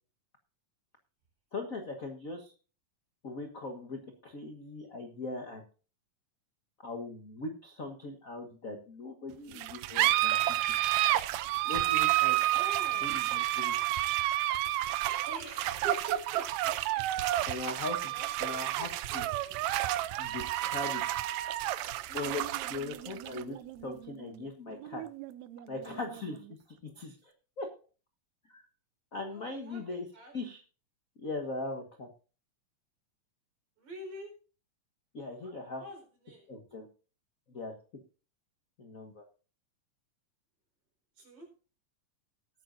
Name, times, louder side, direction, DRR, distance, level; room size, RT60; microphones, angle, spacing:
voice 1, 1.5-2.5 3.2-5.6 6.8-10.7 11.6-12.4 13.0-13.7 17.4-18.1 18.4-19.2 20.2-21.0 22.1-25.0 25.7-27.3 27.6-27.7 28.5-28.6 29.1-30.1 30.3-30.6 31.2-32.1 35.1-35.8 36.5-36.9 37.5-37.7 38.8-39.2, left 2 dB, 70° left, 4 dB, 0.8 m, -40 dB
sound 1, 9.5-26.5, right 15 dB, 80° right, 1.7 m, -31 dB
voice 2, 12.5-13.1 15.3-16.7 18.1-19.6 29.3-29.8 30.1-30.3 33.8-34.3 35.4-36.5 41.2-41.5, right 2 dB, 60° right, 2 dB, 5.8 m, -46 dB
19.5 x 9.0 x 2.6 m, 0.36 s
omnidirectional pair, 3.8 m